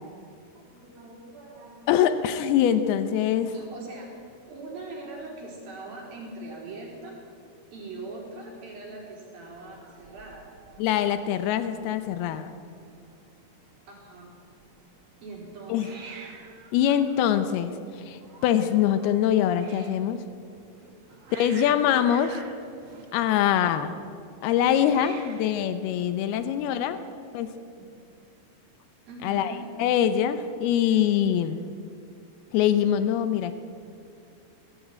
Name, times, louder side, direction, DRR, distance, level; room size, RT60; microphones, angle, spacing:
voice 1, 0.5-1.9 3.5-4.1 4.5-7.2 7.7-10.5 13.9-14.4 15.2-16.0 20.3-21.3 26.3-27.2 27.7-27.9 29.0-29.7, right 2 dB, 70° right, -2 dB, 5.9 m, -42 dB
voice 2, 1.9-3.5 10.8-12.5 15.7-15.9 16.7-20.2 21.3-22.4 23.1-23.9 24.4-27.0 27.3-27.5 29.2-31.6 32.5-33.5, left 10 dB, 85° left, 11 dB, 2.8 m, -24 dB
Hiss, 9.4-26.8, right 4 dB, 45° right, 2.0 m, -49 dB
20.5 x 15.5 x 9.0 m, 2.5 s
omnidirectional pair, 4.4 m